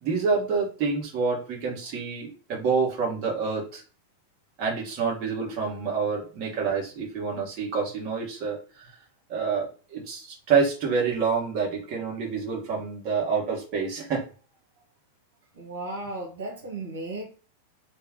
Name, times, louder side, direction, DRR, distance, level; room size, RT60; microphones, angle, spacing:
voice 1, 0.0-3.8 4.6-8.9 9.3-14.2, right 5 dB, 45° right, -2 dB, 1.4 m, -27 dB
voice 2, 15.5-17.2, right 2 dB, 90° right, -2 dB, 1.2 m, -35 dB
3.2 x 2.3 x 3.5 m, 0.37 s
hypercardioid pair, 120°, 0 cm